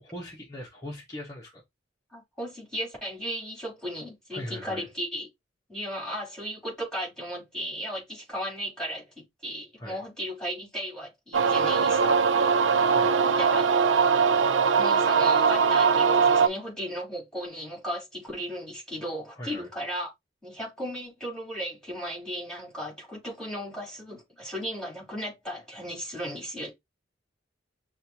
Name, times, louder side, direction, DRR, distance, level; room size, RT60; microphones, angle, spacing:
voice 1, 0.0-1.6 4.3-4.9 9.8-10.0 12.9-13.2 19.4-19.7, left 1 dB, 20° left, 1.1 m, -40 dB
voice 2, 2.1-5.3 5.7-12.2 13.4-13.7 14.4-20.1 20.4-26.7, equal, 5° left, 3.4 m, -36 dB
sound 1, 11.3-16.5, right 5 dB, 80° right, 0.4 m, -21 dB
6.4 x 2.5 x 2.8 m
head